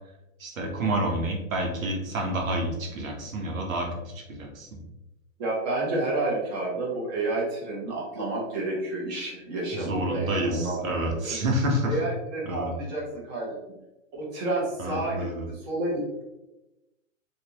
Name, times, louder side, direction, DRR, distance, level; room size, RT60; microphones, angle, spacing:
voice 1, 0.4-3.9 4.1-4.8 9.7-12.0 12.4-12.7 14.8-15.5, right 1 dB, 85° right, 1 dB, 1.2 m, -28 dB
voice 2, 5.4-10.8 11.1-11.3 11.9-13.5 14.1-16.2, right 2 dB, 35° right, -5 dB, 1.3 m, -30 dB
3.3 x 2.6 x 2.9 m, 0.97 s
hypercardioid pair, 150°, 39 cm